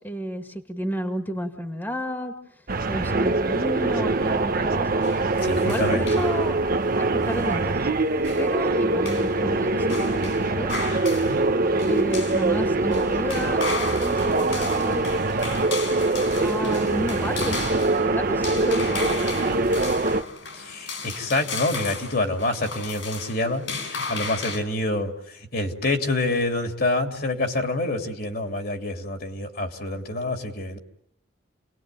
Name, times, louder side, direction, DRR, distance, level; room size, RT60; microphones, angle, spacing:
voice 1, 0.0-2.3 2.9-5.0 5.6-6.5 7.0-7.8 8.4-10.8 11.8-15.1 16.4-17.6 18.0-19.6, equal, 10° left, 5 dB, 2.1 m, -32 dB
sound 1, 2.7-20.2, right 2 dB, 50° right, 1.1 m, -23 dB
sound 2, 5.0-24.6, left 4 dB, 75° left, 5.1 m, -36 dB
voice 2, 5.4-6.0 11.1-11.4 20.5-30.8, left 2 dB, 55° left, 4 dB, 2.9 m, -27 dB
29.5 x 20.0 x 9.2 m, 0.78 s
head